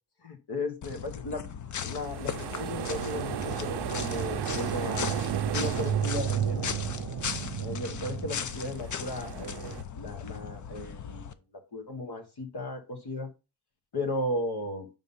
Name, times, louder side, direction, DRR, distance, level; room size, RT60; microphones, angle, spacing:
voice 1, 0.2-1.4 1.8-5.3 5.5-6.7 7.6-11.4 11.7-13.3 13.9-14.9, left 1 dB, 60° left, 1.4 m, -35 dB
sound 1, 0.8-11.3, left 7 dB, 45° left, 0.5 m, -38 dB
sound 2, 1.9-9.8, right 10 dB, 65° right, 0.6 m, -33 dB
5.4 x 3.7 x 5.4 m
wide cardioid pair, 130°, 43 cm